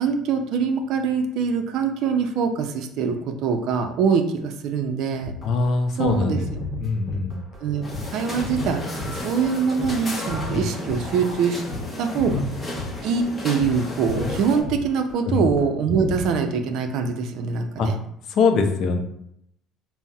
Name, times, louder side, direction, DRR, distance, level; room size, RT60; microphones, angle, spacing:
voice 1, 0.0-3.2 3.4-5.3 6.0-6.4 7.1-7.2 7.6-7.8 8.1-11.6 12.0-12.3 13.0-18.0, right 6 dB, 65° right, 6 dB, 0.4 m, -23 dB
sound 1, 5.2-11.9 12.1-13.3 13.6-13.8 14.0-15.2 15.5-15.7 15.9-16.4, left 2 dB, 25° right, 0.8 m, -33 dB
voice 2, 5.4-6.5 6.8-7.4 10.5-10.6 12.3-12.4 15.2-15.5 17.8-17.9 18.3-19.0, left 4 dB, 60° left, 6 dB, 0.4 m, -22 dB
sound 2, 7.8-14.6, left 1 dB, 25° left, 0.7 m, -34 dB
3.9 x 2.0 x 2.3 m, 0.75 s
supercardioid pair, 85°, 0 cm